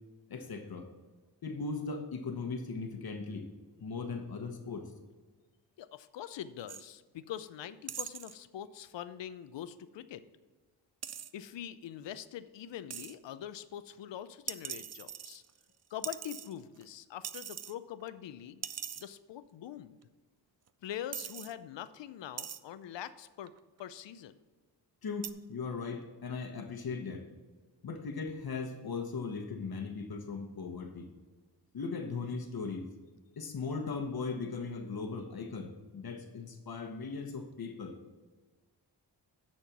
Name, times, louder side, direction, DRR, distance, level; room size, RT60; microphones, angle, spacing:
voice 1, 0.3-0.9 1.4-3.5 3.8-4.9 25.0-27.2 27.8-31.1 31.7-32.9 33.4-38.0, left 4 dB, 55° left, 4 dB, 1.1 m, -38 dB
voice 2, 5.8-10.2 11.3-15.4 15.9-18.6 19.0-20.0 20.8-23.5 23.8-24.3, left 10 dB, 80° left, 14 dB, 0.6 m, -43 dB
sound 1, 6.7-6.9 7.9-8.4 11.0-11.3 12.9-13.1 14.5-15.6 16.0-16.8 17.2-17.7 18.1-18.2 18.6-19.1 20.0-20.1 20.7-20.8 21.1-21.5 22.4-22.6 23.5-23.8 25.2-25.3, right 8 dB, 40° right, 0.4 m, -41 dB
10.0 x 4.4 x 5.9 m, 1.3 s
cardioid pair, 85°, 43 cm